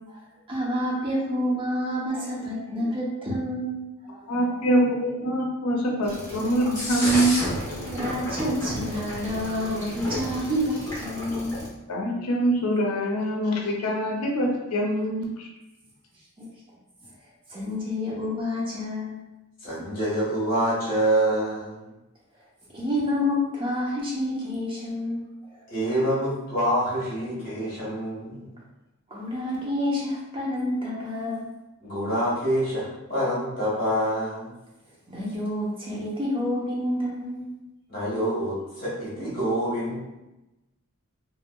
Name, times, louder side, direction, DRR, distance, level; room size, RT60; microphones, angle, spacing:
voice 1, 0.5-4.5 6.4-6.6 7.9-11.6 16.4-16.5 17.5-19.2 22.7-25.6 29.1-31.5 35.1-37.5, left 1 dB, 25° right, -5 dB, 0.7 m, -29 dB
voice 2, 4.3-7.4 11.9-15.5, right 1 dB, 85° left, 0 dB, 0.5 m, -24 dB
sound 1, 6.0-11.7, equal, 15° left, 1.0 m, -32 dB
voice 3, 19.6-21.9 25.7-28.6 31.8-34.5 37.9-40.0, right 1 dB, 40° left, -7 dB, 1.4 m, -26 dB
3.1 x 2.7 x 2.2 m, 0.98 s
head